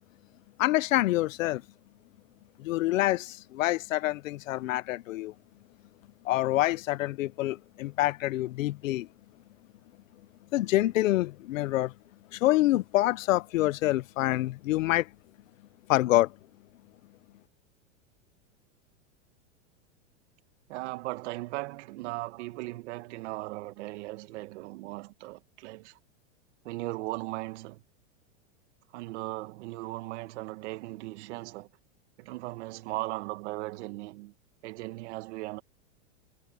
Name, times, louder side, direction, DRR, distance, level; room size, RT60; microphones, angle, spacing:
voice 1, 0.6-1.6 2.6-5.3 6.2-9.1 10.5-11.9 12.3-15.1 15.9-16.3, left 16 dB, 85° left, 0.9 m, -26 dB
voice 2, 20.7-26.0 26.6-27.8 28.9-31.7 32.2-34.3 34.6-35.6, right 20 dB, 60° right, 2.0 m, -37 dB
supercardioid pair, 145°, 38 cm